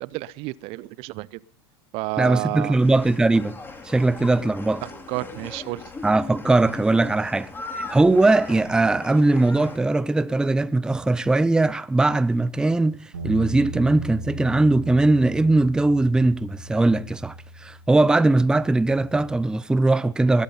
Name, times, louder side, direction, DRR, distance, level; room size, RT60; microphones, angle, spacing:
voice 1, 0.0-1.4 1.9-2.8 4.8-5.9, right 20 dB, 45° right, 0.6 m, -31 dB
voice 2, 2.2-3.6 3.8-4.8 6.0-20.4, right 2 dB, 5° right, 0.6 m, -20 dB
sound 1, 2.8-9.8, left 3 dB, 15° left, 3.6 m, -38 dB
Bass guitar, 13.1-19.4, right 1 dB, 80° right, 4.6 m, -38 dB
20.5 x 13.0 x 4.0 m
hypercardioid pair, 90°, 13 cm